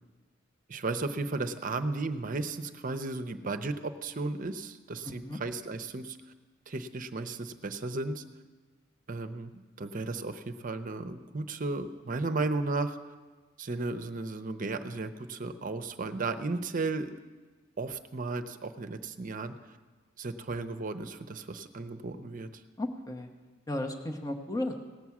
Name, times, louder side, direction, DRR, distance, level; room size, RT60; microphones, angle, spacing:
voice 1, 0.7-6.2 6.7-8.2 9.1-13.0 13.6-17.1 17.8-19.5 20.2-22.5, right 3 dB, 45° right, 8 dB, 0.7 m, -34 dB
voice 2, 5.0-5.4 22.8-23.3 23.7-24.7, left 1 dB, 20° left, 2 dB, 1.0 m, -34 dB
18.0 x 6.1 x 7.2 m, 1.3 s
head